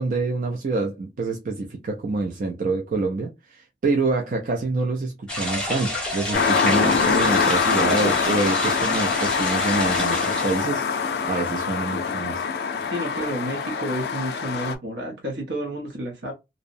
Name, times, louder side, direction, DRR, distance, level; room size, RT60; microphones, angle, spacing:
voice 1, 0.0-12.4, right 3 dB, 50° right, 0.4 m, -26 dB
sound 1, 5.3-10.7, left 1 dB, 5° left, 0.7 m, -29 dB
sound 2, 6.3-14.7, left 5 dB, 60° left, 0.4 m, -24 dB
voice 2, 12.9-16.3, right 1 dB, 75° right, 0.7 m, -30 dB
2.6 x 2.0 x 2.5 m
head